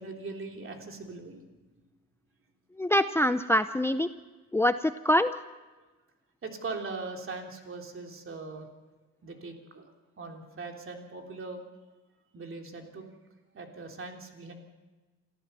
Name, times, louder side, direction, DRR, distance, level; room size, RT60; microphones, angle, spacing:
voice 1, 0.0-1.4 6.4-8.7 9.2-9.9 10.2-11.6 12.3-13.1 13.5-14.5, right 3 dB, 45° right, 2 dB, 3.4 m, -40 dB
voice 2, 2.8-4.1 4.5-5.3, left 1 dB, 10° left, 11 dB, 0.6 m, -24 dB
27.5 x 14.5 x 6.9 m, 1.2 s
cardioid pair, 90°, 30 cm